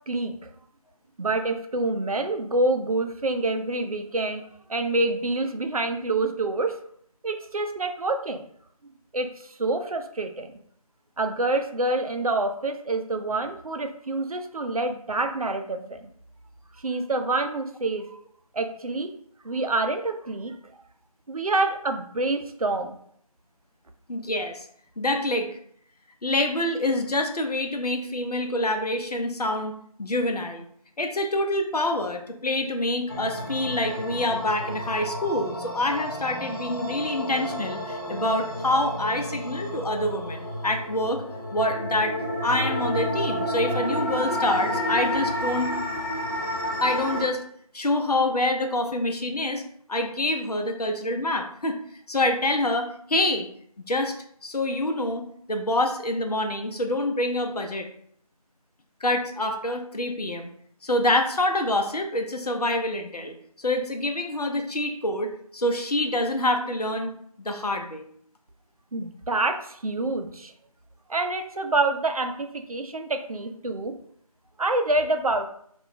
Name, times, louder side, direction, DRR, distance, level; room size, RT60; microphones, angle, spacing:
voice 1, 0.1-0.5 1.2-4.4 4.7-6.8 7.2-8.4 9.1-10.5 11.2-16.1 16.8-18.2 18.5-19.1 19.4-20.5 21.3-23.0 68.9-70.5 71.1-73.9 74.6-75.5, right 2 dB, 70° right, 6 dB, 0.5 m, -27 dB
voice 2, 24.1-24.7 25.0-25.5 26.2-29.7 30.0-30.7 31.0-41.2 41.5-45.7 46.8-47.4 47.7-49.6 49.9-51.8 52.1-53.5 53.9-54.2 54.4-57.9 59.0-60.5 60.8-68.0, left 1 dB, 85° left, 4 dB, 0.7 m, -26 dB
sound 1, 33.1-47.2, equal, 35° left, 0.9 m, -30 dB
2.4 x 2.1 x 3.8 m, 0.64 s
figure-of-eight pair, 175°, 19 cm